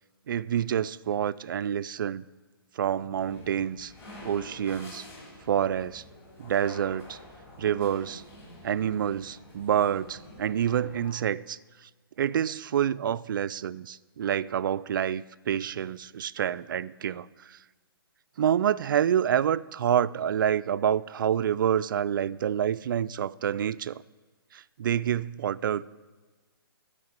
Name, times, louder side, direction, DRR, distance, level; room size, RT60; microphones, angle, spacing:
voice 1, 0.3-2.2 2.8-3.9 4.2-5.0 5.5-6.0 6.4-7.2 7.6-8.2 8.6-11.9 12.2-17.6 18.4-24.0 24.5-25.9, right 9 dB, 55° right, 0.4 m, -27 dB
sound 1, 3.2-11.1, left 1 dB, 20° left, 3.5 m, -48 dB
13.0 x 5.1 x 8.1 m
hypercardioid pair, 145°, 13 cm